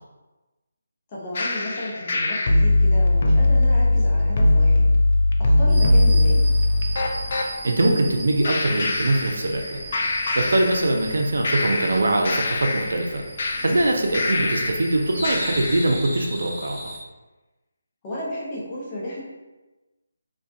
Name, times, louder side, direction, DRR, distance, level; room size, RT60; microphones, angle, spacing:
voice 1, 1.1-4.8 5.4-6.5 14.2-14.5 18.0-19.2, equal, 25° left, -6 dB, 0.7 m, -33 dB
sound 1, 1.4-7.5 8.4-9.7 9.9-11.1 11.4-14.9 15.2-15.9, left 2 dB, 45° left, 0.3 m, -20 dB
sound 2, 5.7-17.0, right 1 dB, 15° right, 0.6 m, -37 dB
voice 2, 7.3-9.8 10.4-13.2 13.6-16.9, right 2 dB, 70° right, 2 dB, 0.4 m, -22 dB
2.3 x 2.1 x 2.6 m, 1.1 s
figure-of-eight pair, 155°, 0 cm